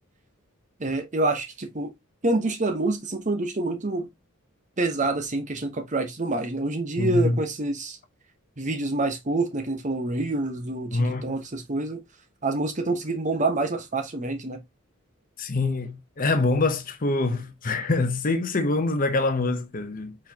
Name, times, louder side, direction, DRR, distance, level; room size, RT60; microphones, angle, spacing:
voice 1, 0.8-1.9 2.2-4.1 4.8-8.0 8.6-12.0 12.4-14.6, right 2 dB, 35° right, 1.0 m, -27 dB
voice 2, 7.0-7.4 10.9-11.4 15.4-20.2, left 2 dB, 40° left, 0.7 m, -25 dB
4.4 x 4.3 x 2.8 m
head